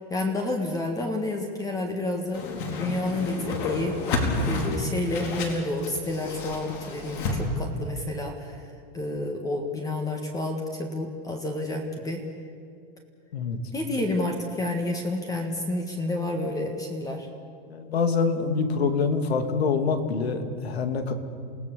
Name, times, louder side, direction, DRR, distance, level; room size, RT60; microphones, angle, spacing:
voice 1, 0.1-2.5 2.8-4.0 4.5-8.6 8.9-12.3 13.7-17.3, left 2 dB, 10° left, 3 dB, 1.8 m, -29 dB
Whoosh swoosh swish, 2.3-7.4, left 3 dB, 55° left, 4.7 m, -30 dB
voice 2, 17.7-21.1, left 5 dB, 90° left, 7 dB, 2.7 m, -25 dB
28.5 x 17.5 x 7.1 m, 2.4 s
supercardioid pair, 150°, 30 cm